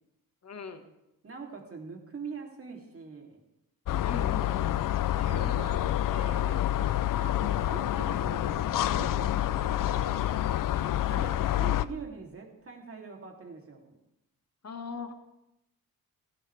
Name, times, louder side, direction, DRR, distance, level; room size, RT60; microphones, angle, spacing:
voice 1, 0.4-0.8 4.0-4.8 7.3-7.4 11.1-11.3 14.6-15.1, left 5 dB, 45° left, 7 dB, 1.7 m, -39 dB
voice 2, 1.2-3.4 5.2-10.3 11.0-11.3 11.6-13.9, right 4 dB, 40° right, 1 dB, 3.1 m, -43 dB
sound 1, 3.9-11.9, left 13 dB, 65° left, 0.6 m, -28 dB
17.5 x 16.0 x 3.4 m, 0.88 s
cardioid pair, 95°, 35 cm